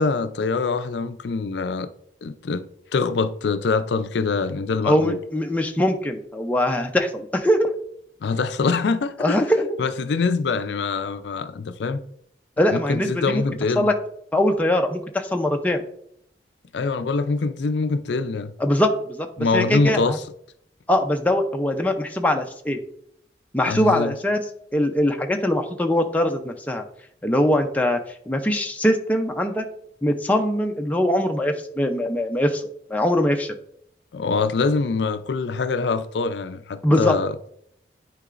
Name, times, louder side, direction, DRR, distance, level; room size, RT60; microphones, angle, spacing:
voice 1, 0.0-1.9 2.2-2.7 2.9-5.2 8.2-9.4 9.8-12.0 12.7-13.9 16.7-18.5 19.4-20.2 23.6-24.1 34.1-37.3, left 4 dB, 70° left, 0.4 m, -24 dB
voice 2, 4.8-7.7 9.2-9.8 12.6-13.4 13.8-13.9 14.3-15.8 18.6-20.2 20.9-22.8 23.5-24.4 24.7-26.8 27.2-28.0 28.3-29.6 30.0-33.5 36.8-37.1, left 1 dB, 10° left, 0.5 m, -22 dB
9.7 x 4.6 x 2.5 m
head